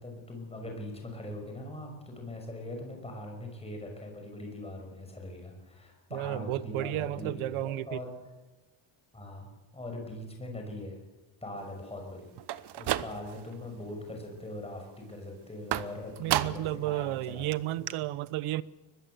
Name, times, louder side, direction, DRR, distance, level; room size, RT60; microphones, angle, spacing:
voice 1, 0.0-8.1 9.1-11.0 11.4-12.3 12.8-17.5, left 1 dB, 10° left, 5.8 m, -41 dB
voice 2, 6.1-8.0 16.2-18.6, right 16 dB, 90° right, 0.9 m, -32 dB
sound 1, 12.4-13.5 13.9-14.4 15.7-16.8 17.2-17.3 17.5-17.6 17.9-18.0, right 13 dB, 55° right, 1.0 m, -32 dB
23.0 x 21.0 x 7.9 m
cardioid pair, 165°, 47 cm